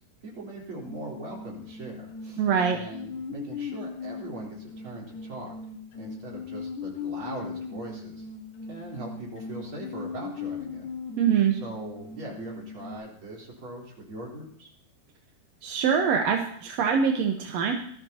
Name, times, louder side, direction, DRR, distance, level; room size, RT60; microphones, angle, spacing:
voice 1, 0.2-2.4 2.7-5.5 5.9-8.3 8.7-10.9 11.5-14.7, right 2 dB, 35° right, -3 dB, 4.4 m, -41 dB
sound 1, 0.9-13.0, left 5 dB, 65° left, 2.9 m, -39 dB
voice 2, 2.4-2.8 11.2-11.6 15.6-17.7, right 7 dB, 65° right, 2 dB, 1.9 m, -24 dB
20.0 x 13.5 x 2.9 m, 0.62 s
omnidirectional pair, 3.9 m